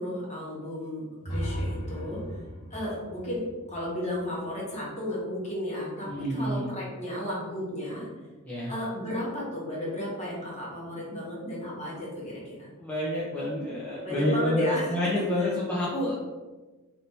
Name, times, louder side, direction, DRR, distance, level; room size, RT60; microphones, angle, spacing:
voice 1, 0.0-2.4 2.7-8.1 8.7-12.7 14.0-14.8 15.4-15.6, left 1 dB, 30° left, -6 dB, 1.4 m, -34 dB
sound 1, 1.2-5.1, equal, 85° left, 1.2 m, -36 dB
voice 2, 6.1-6.7 8.4-8.7 12.8-16.2, left 1 dB, 5° left, -8 dB, 0.6 m, -28 dB
3.4 x 2.7 x 4.2 m, 1.2 s
head